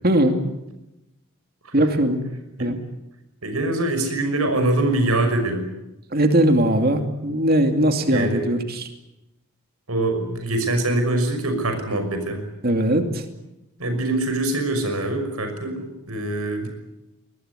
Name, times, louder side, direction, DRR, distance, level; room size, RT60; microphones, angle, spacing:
voice 1, 0.0-0.4 1.7-2.2 2.6-2.8 6.1-8.9 12.6-13.2, right 1 dB, 45° right, 6 dB, 2.6 m, -20 dB
voice 2, 3.4-5.7 8.0-8.6 9.9-12.4 13.8-16.7, right 2 dB, 80° right, 7 dB, 6.0 m, -24 dB
23.0 x 20.5 x 9.8 m, 0.94 s
head